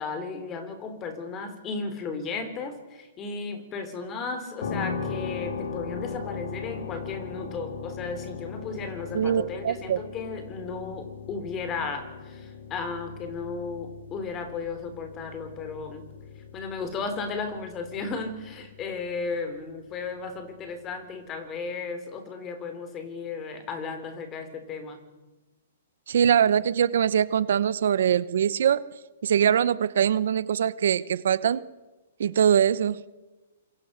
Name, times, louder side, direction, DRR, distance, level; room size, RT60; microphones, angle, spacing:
voice 1, 0.0-16.0 16.5-25.0, left 4 dB, 20° left, 9 dB, 3.4 m, -35 dB
sound 1, 4.6-19.3, left 5 dB, 65° left, 3.8 m, -38 dB
voice 2, 9.1-10.0 26.1-28.8 29.2-31.6 32.2-33.0, right 8 dB, 65° right, 17 dB, 1.0 m, -22 dB
27.0 x 23.0 x 6.6 m, 1.1 s
hypercardioid pair, 165°, 0 cm